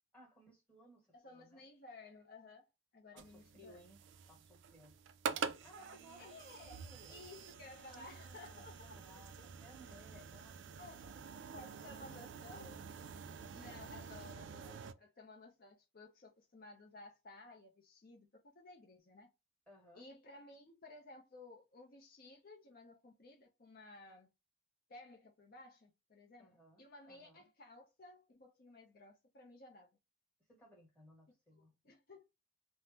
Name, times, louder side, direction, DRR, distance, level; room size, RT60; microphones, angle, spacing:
voice 1, 0.1-1.6 3.1-4.0 4.3-4.9 5.6-7.2 7.9-10.6 10.9-11.3 11.8-12.2 12.5-12.8 19.7-20.1 26.4-27.5 30.5-31.7, right 1 dB, 5° left, 1.5 m, -61 dB
voice 2, 1.1-2.7 2.9-3.8 6.2-6.8 7.1-9.0 10.0-10.2 10.8-11.0 11.5-12.7 13.5-19.3 20.0-24.3 24.9-29.9 31.5-32.2, left 2 dB, 45° left, 0.5 m, -56 dB
sound 1, 3.2-14.9, right 6 dB, 60° right, 0.3 m, -47 dB
3.4 x 2.0 x 2.7 m
head